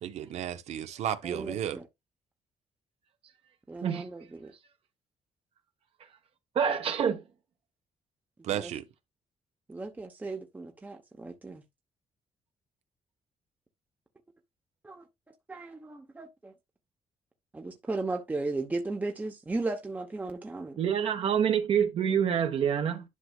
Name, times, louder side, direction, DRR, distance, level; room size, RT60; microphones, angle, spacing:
voice 1, 0.0-1.8 8.4-8.9, right 10 dB, 70° right, 0.9 m, -33 dB
voice 2, 1.2-1.8 3.7-4.5 8.5-8.7 9.7-11.6 14.8-15.0 15.5-16.5 17.5-20.8, right 3 dB, 15° right, 0.9 m, -36 dB
voice 3, 6.5-7.2 20.8-23.0, right 8 dB, 55° right, 1.3 m, -26 dB
11.0 x 6.0 x 2.4 m
cardioid pair, 155°, 12 cm